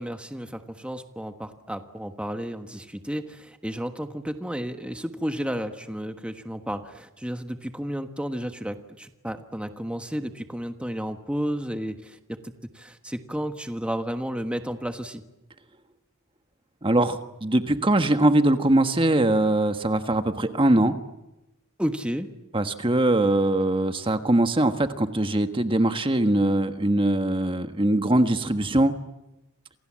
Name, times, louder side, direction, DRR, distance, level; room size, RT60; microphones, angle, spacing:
voice 1, 0.0-12.4 12.7-15.2 21.8-22.3, equal, 5° right, 7 dB, 1.4 m, -32 dB
voice 2, 16.8-20.9 22.5-28.9, right 1 dB, 25° right, 8 dB, 1.4 m, -22 dB
29.0 x 27.0 x 7.6 m, 0.93 s
head